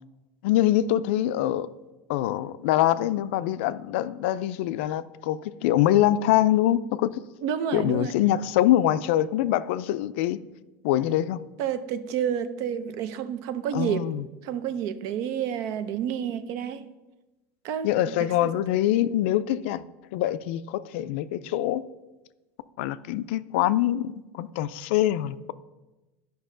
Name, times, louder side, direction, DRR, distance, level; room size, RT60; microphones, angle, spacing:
voice 1, 0.4-1.7 2.1-7.3 7.7-10.4 10.8-11.4 13.7-14.2 17.8-19.8 20.1-21.9 22.8-25.5, left 13 dB, 75° left, 0.4 m, -24 dB
voice 2, 7.4-8.1 11.6-14.1 14.4-16.9 17.6-18.5, right 9 dB, 60° right, 0.6 m, -30 dB
11.0 x 5.4 x 3.8 m
supercardioid pair, 130°, 6 cm